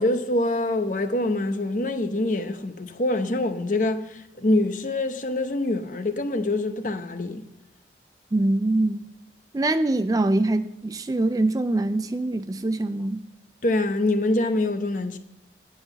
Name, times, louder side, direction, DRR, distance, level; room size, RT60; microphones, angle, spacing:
voice 1, 0.0-7.4 13.6-15.2, left 2 dB, 45° left, 0.8 m, -25 dB
voice 2, 8.3-9.0 9.5-13.2, right 2 dB, 20° right, 0.3 m, -23 dB
10.0 x 5.7 x 8.0 m
head